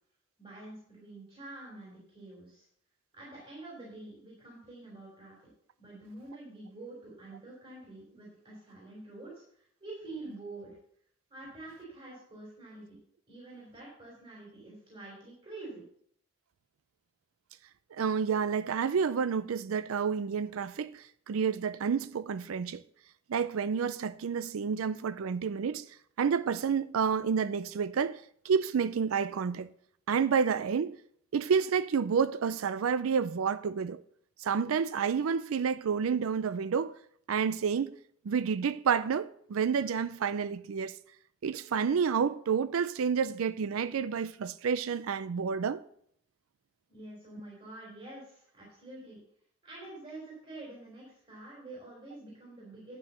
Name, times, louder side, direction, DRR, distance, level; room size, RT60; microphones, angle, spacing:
voice 1, 0.4-2.6 3.1-5.4 5.8-9.4 9.8-10.8 11.3-13.0 13.3-15.8 46.9-49.2 49.6-53.0, right 2 dB, 25° right, 3.2 m, -47 dB
voice 2, 17.9-22.8 23.3-25.9 26.2-29.7 30.1-31.0 31.3-34.0 34.4-36.9 37.3-38.0 38.2-41.0 41.4-45.8, right 6 dB, 90° right, 0.4 m, -29 dB
10.0 x 5.7 x 6.8 m
head